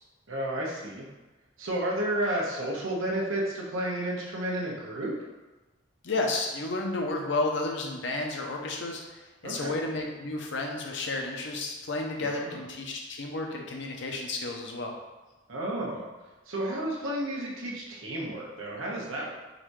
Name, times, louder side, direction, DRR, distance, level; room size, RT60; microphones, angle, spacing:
voice 1, 0.3-1.1 1.6-5.2 9.4-9.7 12.2-12.6 15.5-16.1 16.5-19.3, right 1 dB, 90° right, -3 dB, 1.0 m, -31 dB
voice 2, 6.0-14.9, left 2 dB, 60° left, 1 dB, 0.7 m, -32 dB
4.0 x 2.7 x 4.6 m, 1.1 s
head